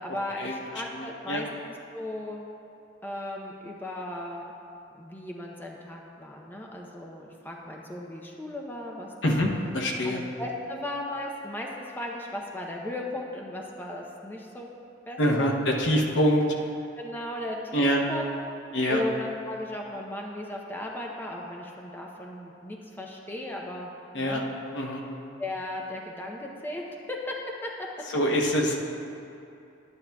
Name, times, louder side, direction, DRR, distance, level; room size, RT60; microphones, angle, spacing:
voice 1, 0.0-2.4 3.0-4.5 5.0-9.4 10.0-14.7 15.1-15.6 16.9-18.3 18.6-24.4 25.4-27.9, left 1 dB, 10° left, -1 dB, 0.6 m, -36 dB
voice 2, 0.9-1.4 9.2-10.2 15.2-16.4 17.7-18.0 18.7-19.0 24.1-24.4 24.7-25.0 28.1-28.7, equal, 75° left, 0 dB, 0.9 m, -25 dB
11.0 x 9.6 x 2.3 m, 2.7 s
head